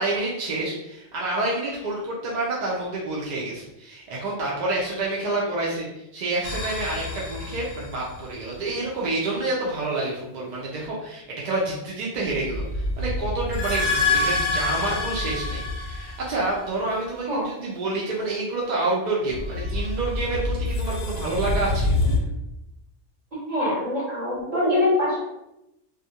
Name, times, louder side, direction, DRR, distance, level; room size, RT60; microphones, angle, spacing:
voice 1, 0.0-21.9, right 2 dB, 60° right, -4 dB, 0.4 m, -28 dB
sound 1, 6.4-8.4 12.3-16.8 19.3-22.2, left 2 dB, 70° left, 0.8 m, -27 dB
voice 2, 23.5-25.2, left 1 dB, 35° right, -7 dB, 1.1 m, -23 dB
2.3 x 2.1 x 2.7 m, 0.89 s
omnidirectional pair, 1.2 m